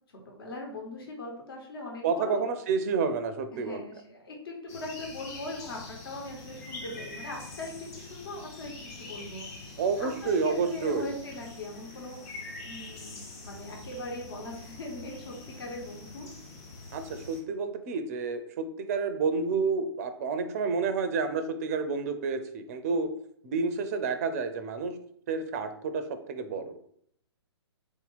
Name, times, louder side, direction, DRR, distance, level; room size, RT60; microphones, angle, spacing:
voice 1, 0.2-2.5 3.5-9.5 10.0-12.2 12.6-16.3, left 2 dB, 55° left, 0 dB, 1.4 m, -40 dB
voice 2, 2.0-3.8 9.8-11.1 16.9-23.1 23.4-25.0 25.3-26.0 26.3-26.8, right 4 dB, 35° right, 9 dB, 0.5 m, -29 dB
sound 1, 4.7-17.4, left 3 dB, 35° left, 1.0 m, -45 dB
4.1 x 2.8 x 4.0 m, 0.65 s
figure-of-eight pair, 125°, 14 cm